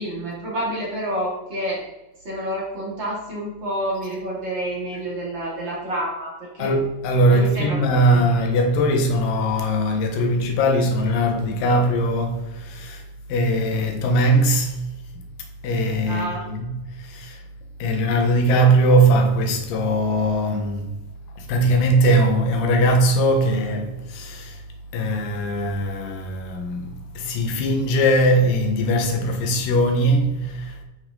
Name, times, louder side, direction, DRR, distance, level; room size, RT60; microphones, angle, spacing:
voice 1, 0.0-1.8 2.2-6.8 7.3-8.3 13.7-14.1 16.1-16.4, right 1 dB, 35° right, 3.3 m, -29 dB
voice 2, 6.6-13.0 13.3-14.8 15.6-17.4 17.8-20.9 21.4-24.6 24.9-30.8, right 1 dB, 70° left, 2.8 m, -20 dB
11.0 x 6.0 x 3.9 m
omnidirectional pair, 4.1 m